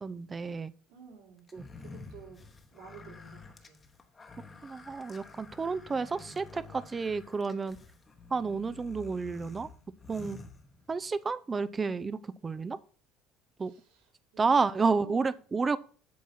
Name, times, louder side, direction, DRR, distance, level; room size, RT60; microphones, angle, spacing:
voice 1, 0.0-0.7 1.5-1.6 4.6-7.8 8.3-9.7 10.1-10.4 10.9-12.8 13.6-13.7 14.4-15.8, right 4 dB, 20° right, 15 dB, 0.5 m, -30 dB
voice 2, 0.9-1.4 1.8-2.4 2.7-3.8 13.6-14.6 15.0-15.4, right 7 dB, 80° right, -4 dB, 4.4 m, -52 dB
sound 1, 1.5-11.2, left 3 dB, 20° left, 1.1 m, -50 dB
8.5 x 6.2 x 4.2 m, 0.42 s
cardioid pair, 130°, 0 cm